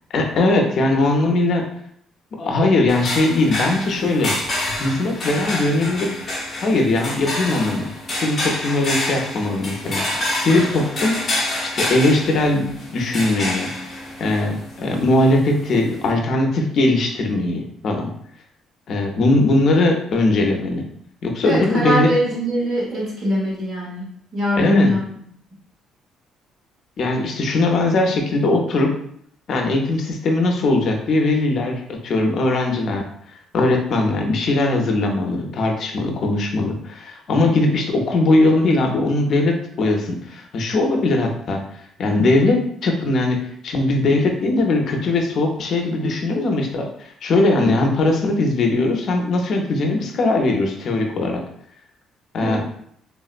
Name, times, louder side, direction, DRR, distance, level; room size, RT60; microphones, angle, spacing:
voice 1, 0.1-1.6 2.4-4.3 4.8-6.1 6.6-7.9 8.2-11.2 11.6-13.7 14.2-18.1 18.9-20.8 21.2-22.1 24.6-24.9 27.0-28.9 29.5-33.0 33.5-41.6 42.0-43.4 43.6-51.4 52.3-52.6, left 2 dB, 50° left, 2 dB, 0.5 m, -20 dB
sound 1, 2.9-16.1, left 1 dB, 25° left, 0.8 m, -28 dB
voice 2, 21.4-24.0 24.3-25.0 52.4-52.6, equal, 40° right, -5 dB, 1.0 m, -21 dB
3.4 x 2.0 x 2.4 m, 0.66 s
cardioid pair, 145°, 0 cm